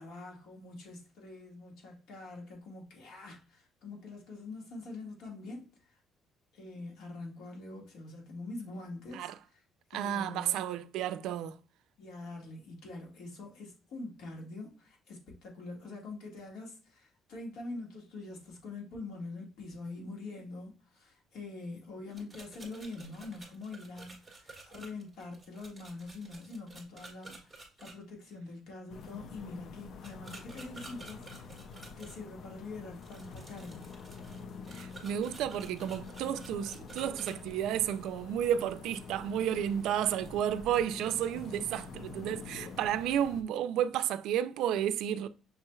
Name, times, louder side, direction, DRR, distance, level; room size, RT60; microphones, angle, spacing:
voice 1, 0.0-6.0 6.5-9.6 9.9-10.6 12.0-31.6 32.0-33.9 41.3-41.8 42.5-42.7, left 3 dB, 75° left, 1.6 m, -45 dB
voice 2, 9.9-11.6 34.7-45.3, right 10 dB, 80° right, 0.3 m, -32 dB
sound 1, 22.1-27.9 30.0-32.2 33.0-37.4, right 3 dB, 5° right, 1.5 m, -51 dB
sound 2, 28.9-43.4, left 5 dB, 50° left, 0.4 m, -47 dB
6.1 x 3.1 x 2.2 m
cardioid pair, 150°, 0 cm